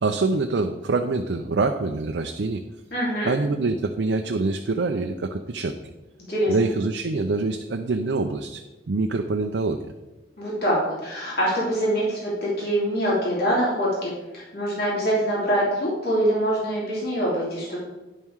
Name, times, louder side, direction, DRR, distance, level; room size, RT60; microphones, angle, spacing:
voice 1, 0.0-2.6 3.2-5.8 6.5-9.8, right 3 dB, 90° right, 5 dB, 0.5 m, -25 dB
voice 2, 2.9-3.3 6.3-6.5 10.4-17.8, equal, 60° left, -6 dB, 2.9 m, -24 dB
10.0 x 5.6 x 4.7 m, 1.1 s
head